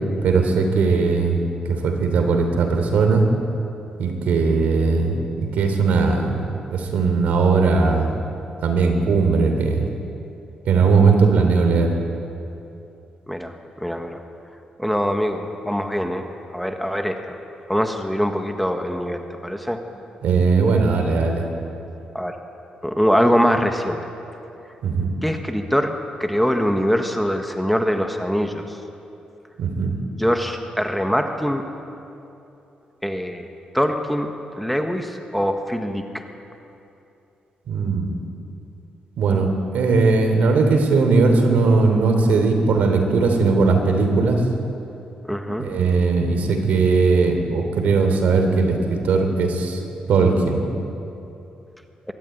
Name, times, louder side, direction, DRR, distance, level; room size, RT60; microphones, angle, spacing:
voice 1, 0.2-1.4 1.8-3.2 4.0-6.4 6.7-8.1 8.6-9.8 10.6-11.9 20.2-21.4 24.8-25.1 29.6-29.9 37.7-38.2 39.2-39.5 39.7-44.4 45.6-49.8 50.1-50.6, right 4 dB, 80° right, 4 dB, 3.2 m, -18 dB
voice 2, 13.8-14.2 14.8-16.2 16.5-17.4 17.7-19.8 22.1-22.3 22.8-24.0 25.2-25.9 26.2-28.8 30.2-31.6 33.0-33.5 33.7-36.0 45.3-45.7, equal, ahead, 4 dB, 1.4 m, -23 dB
22.5 x 13.5 x 9.2 m, 2.8 s
cardioid pair, 120°, 3 cm